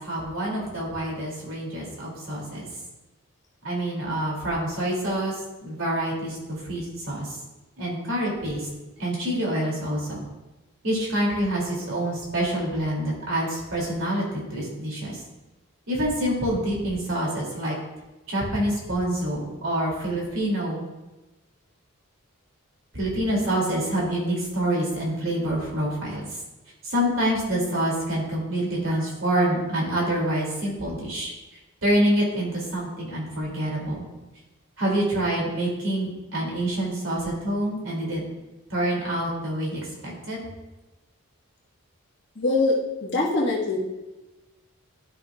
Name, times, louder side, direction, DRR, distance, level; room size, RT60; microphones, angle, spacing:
voice 1, 0.0-2.7 3.6-5.3 5.6-7.3 7.8-8.7 9.0-10.2 10.8-15.2 15.9-17.8 18.3-20.8 22.9-26.3 26.8-31.3 31.8-34.0 34.8-38.2 38.7-40.5, right 1 dB, 65° right, -3 dB, 2.9 m, -26 dB
voice 2, 42.4-43.8, left 2 dB, 50° left, -5 dB, 1.9 m, -23 dB
12.0 x 5.9 x 2.5 m, 1.1 s
head